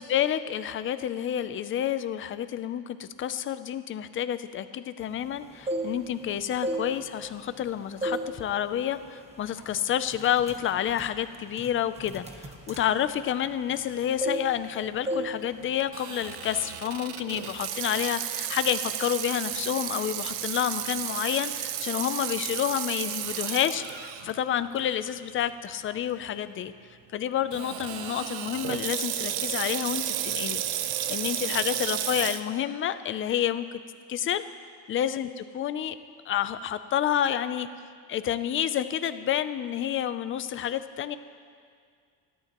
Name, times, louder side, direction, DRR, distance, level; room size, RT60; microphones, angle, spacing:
voice 1, 0.0-26.7 27.1-30.6 31.1-33.8 34.1-34.4 34.9-35.9 36.3-37.7 38.1-41.2, left 10 dB, 30° left, 12 dB, 0.4 m, -29 dB
sound 1, 5.4-6.2 6.6-7.6 8.0-8.4 8.7-9.0 9.6-9.7 10.1-13.9 14.2-14.8 15.1-15.4 15.6-15.9, right 1 dB, 15° right, 1.1 m, -33 dB
Water tap faucet / Sink (filling or washing), 15.9-24.3 24.8-24.9 25.7-25.9 27.5-32.4, right 11 dB, 70° right, 0.9 m, -33 dB
28.5 x 12.0 x 3.0 m, 2.1 s
cardioid pair, 150°, 47 cm